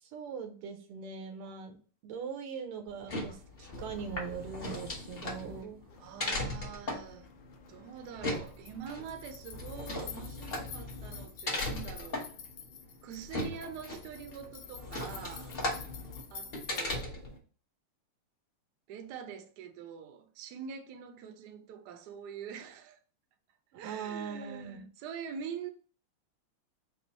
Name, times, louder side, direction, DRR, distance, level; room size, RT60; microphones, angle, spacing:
voice 1, 0.0-5.8 23.8-24.8, right 6 dB, 85° right, 1.6 m, -41 dB
sound 1, 2.9-17.4, left 2 dB, 50° left, 0.6 m, -38 dB
sound 2, 5.9-17.0, left 7 dB, 75° left, 1.0 m, -51 dB
voice 2, 6.0-7.3 7.7-12.2 13.0-15.5 16.3-17.4 18.9-23.0 23.7-25.7, right 7 dB, 70° right, 1.0 m, -44 dB
4.4 x 2.0 x 3.9 m
omnidirectional pair, 2.4 m